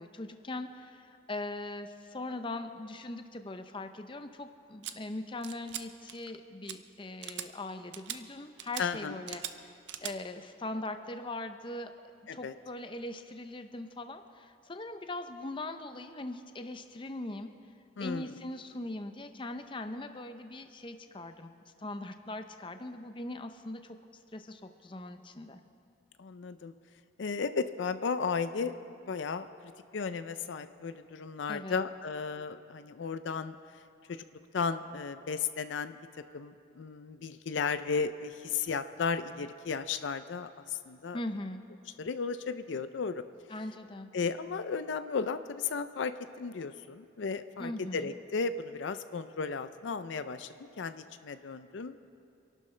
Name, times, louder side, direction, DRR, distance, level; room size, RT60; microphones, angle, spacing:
voice 1, 0.0-9.7 10.0-11.9 12.3-17.5 18.0-21.5 21.8-24.0 24.3-25.6 31.5-31.8 41.1-41.6 43.5-44.1 47.6-48.1, left 2 dB, 25° left, 8 dB, 0.6 m, -40 dB
sound 1, 4.8-4.9 5.4-5.8 6.1-6.4 6.7-6.8 7.2-7.5 7.9-8.2 8.6-8.9 9.3-9.5 9.9-10.1, right 11 dB, 65° right, 0.6 m, -40 dB
voice 2, 8.8-9.2 12.3-12.5 18.0-18.4 26.2-26.7 27.2-28.8 29.0-29.5 29.9-33.6 34.1-34.2 34.5-36.0 36.3-41.2 42.0-43.2 44.1-52.0, left 5 dB, 70° left, 11 dB, 0.5 m, -34 dB
27.0 x 12.0 x 3.3 m, 2.5 s
head